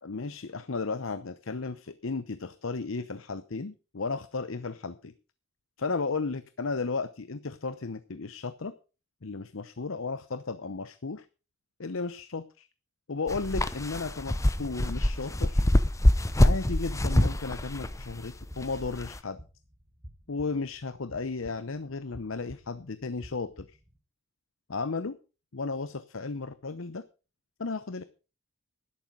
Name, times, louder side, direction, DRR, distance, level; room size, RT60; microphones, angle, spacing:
voice 1, 0.0-5.1 5.8-8.7 9.2-11.2 11.8-12.7 13.1-15.7 16.4-19.4 20.3-23.7 24.7-25.2 25.5-27.0 27.6-28.0, left 4 dB, 70° left, 13 dB, 0.8 m, -34 dB
sound 1, 13.3-19.2, left 1 dB, 15° left, 0.7 m, -25 dB
sound 2, 14.3-24.0, equal, 20° right, 4.3 m, -51 dB
12.0 x 11.5 x 5.1 m, 0.33 s
head